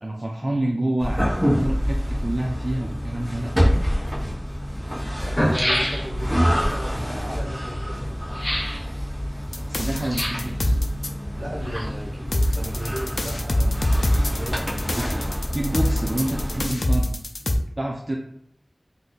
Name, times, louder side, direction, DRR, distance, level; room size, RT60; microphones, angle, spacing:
voice 1, 0.0-3.5 9.7-10.7 15.0-15.1 15.5-17.1 17.4-17.5 17.8-18.1, right 1 dB, 35° right, -1 dB, 0.4 m, -28 dB
sound 1, 1.0-16.7, equal, ahead, 1.2 m, -27 dB
sound 2, 3.8-3.9 4.8-4.9 5.1-6.4 8.3-8.8 10.0-10.5 11.4-12.2 12.5-12.6, equal, 35° left, 0.8 m, -26 dB
voice 2, 5.3-8.2 11.4-15.2, equal, 65° right, -1 dB, 0.8 m, -35 dB
sound 3, 9.5-11.1 12.3-17.6, left 1 dB, 85° left, 0.3 m, -24 dB
2.6 x 2.4 x 3.7 m, 0.70 s
wide cardioid pair, 50°, 0 cm